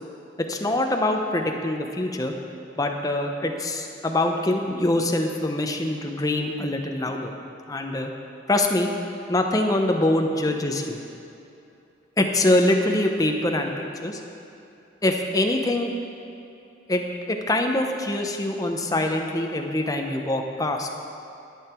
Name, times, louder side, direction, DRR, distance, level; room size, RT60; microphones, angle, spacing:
voice 1, 0.4-2.3 2.8-7.3 7.7-8.1 8.5-8.9 9.3-11.0 12.2-13.7 14.0-14.2 15.0-15.9 16.9-20.9, left 1 dB, 20° left, 3 dB, 0.8 m, -24 dB
11.5 x 8.7 x 4.5 m, 2.7 s
head